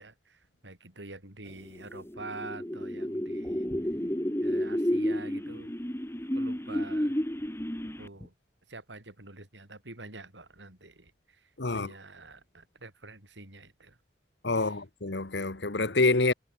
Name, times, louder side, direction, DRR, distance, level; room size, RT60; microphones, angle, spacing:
voice 1, 0.0-3.7 4.4-5.7 6.3-7.2 7.8-8.3 8.7-14.0 14.5-14.8, right 2 dB, 85° right, 7.9 m, -47 dB
sound 1, 1.8-8.2, equal, 15° left, 2.0 m, -31 dB
voice 2, 11.6-11.9 14.4-16.3, left 3 dB, 70° left, 1.4 m, -27 dB
head